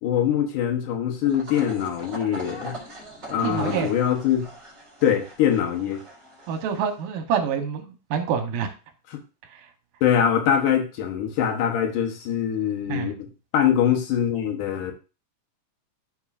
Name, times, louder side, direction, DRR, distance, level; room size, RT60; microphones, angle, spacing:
voice 1, 0.0-2.8 3.3-4.5 5.0-6.0 9.1-9.2 10.0-13.3 13.5-14.9, left 9 dB, 75° left, 3 dB, 2.6 m, -23 dB
sound 1, 1.2-7.0, right 1 dB, 30° right, 4.0 m, -40 dB
voice 2, 3.4-3.9 6.5-8.7 12.9-13.1, right 7 dB, 80° right, 6 dB, 2.6 m, -26 dB
14.0 x 5.3 x 2.5 m, 0.32 s
omnidirectional pair, 3.9 m